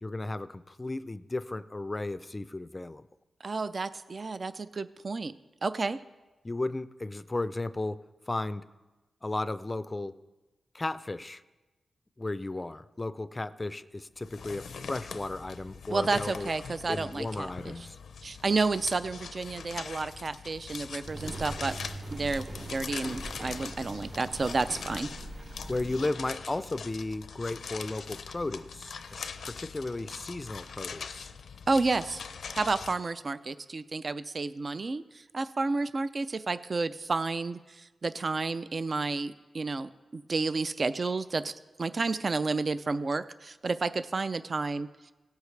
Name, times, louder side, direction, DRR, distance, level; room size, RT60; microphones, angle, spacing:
voice 1, 0.0-3.1 6.4-8.6 9.2-10.2 10.7-11.4 12.2-16.5 16.9-18.0 25.7-31.3, left 2 dB, 25° left, 14 dB, 0.4 m, -35 dB
voice 2, 3.4-5.3 5.6-6.0 15.9-17.7 18.2-21.8 22.1-25.1 31.7-32.2 32.5-41.5 41.8-44.9, right 3 dB, 45° right, 13 dB, 0.4 m, -31 dB
sound 1, 14.2-32.9, left 6 dB, 80° left, 0.5 m, -42 dB
sound 2, 21.0-26.1, right 2 dB, 65° right, 3.5 m, -41 dB
17.5 x 8.1 x 3.2 m, 1.1 s
wide cardioid pair, 90°, 0 cm